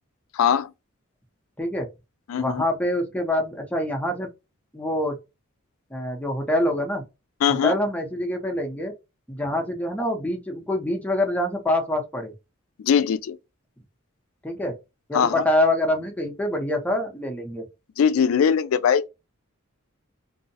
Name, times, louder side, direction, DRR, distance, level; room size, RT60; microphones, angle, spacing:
voice 1, 0.3-0.7 2.3-2.6 7.4-7.7 12.8-13.4 15.1-15.4 18.0-19.1, left 7 dB, 80° left, 0.3 m, -21 dB
voice 2, 1.6-1.9 2.4-4.3 4.7-5.2 5.9-7.1 7.5-8.9 9.3-12.3 14.4-14.8 15.1-17.7, left 1 dB, 5° left, 0.6 m, -25 dB
2.6 x 2.0 x 2.6 m
head